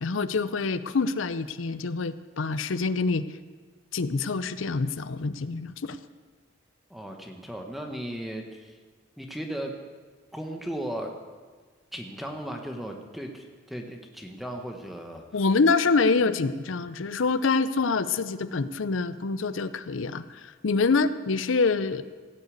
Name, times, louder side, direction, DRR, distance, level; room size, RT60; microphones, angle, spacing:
voice 1, 0.0-3.2 3.9-6.0 15.3-22.0, left 4 dB, 85° left, 13 dB, 0.6 m, -26 dB
voice 2, 6.9-8.8 9.2-9.7 10.3-11.1 11.9-15.4 16.3-16.4, right 1 dB, ahead, 2 dB, 1.1 m, -36 dB
17.0 x 6.7 x 8.4 m, 1.5 s
head